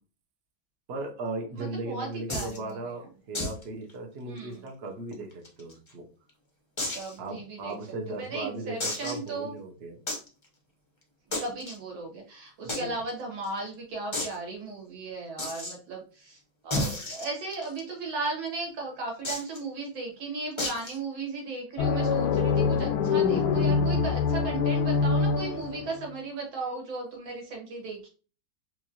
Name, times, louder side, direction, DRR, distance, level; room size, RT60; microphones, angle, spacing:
voice 1, 0.9-6.0 7.2-10.0 12.6-13.0, right 2 dB, 60° right, 1 dB, 0.6 m, -37 dB
voice 2, 1.6-3.0 4.3-4.6 6.9-7.7 8.1-9.6 11.3-16.4 16.6-28.1, right 3 dB, 80° right, -1 dB, 2.2 m, -36 dB
sound 1, 2.3-2.6 3.3-3.6 3.9-4.0 4.4-4.5 5.1-5.9 6.8-7.1 7.7-7.8 8.8-9.3 10.1-10.3 11.3-11.7 12.7-12.8 13.1-13.2 13.4-13.5 14.1-14.4 15.4-15.7 16.7-17.8 19.2-19.6 20.6-21.0, left 2 dB, 50° left, 0.3 m, -32 dB
sound 2, 21.8-26.1, left 5 dB, 75° left, 0.9 m, -25 dB
4.4 x 2.5 x 2.8 m, 0.36 s
omnidirectional pair, 2.2 m